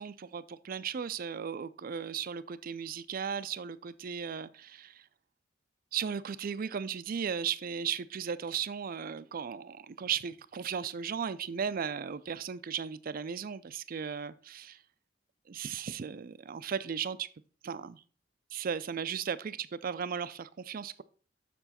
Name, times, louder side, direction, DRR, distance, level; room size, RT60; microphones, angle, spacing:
voice 1, 0.0-5.0 5.9-14.8 15.5-17.3 17.6-18.0 18.5-21.0, right 7 dB, 50° right, 0.4 m, -36 dB
6.9 x 6.6 x 4.2 m
head